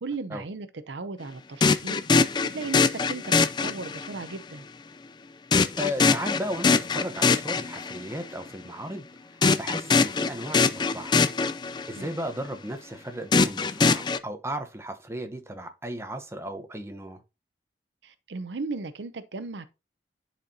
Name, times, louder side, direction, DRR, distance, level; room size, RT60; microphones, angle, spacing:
voice 1, 0.0-2.0 2.4-4.7 12.0-12.2 18.0-19.7, right 3 dB, 85° right, 0.6 m, -36 dB
sound 1, 1.6-4.2 5.5-8.1 9.4-12.1 13.3-14.2, left 4 dB, 25° left, 0.3 m, -23 dB
voice 2, 5.7-11.1 11.9-17.2, equal, 15° right, 0.8 m, -35 dB
10.5 x 4.4 x 2.7 m
head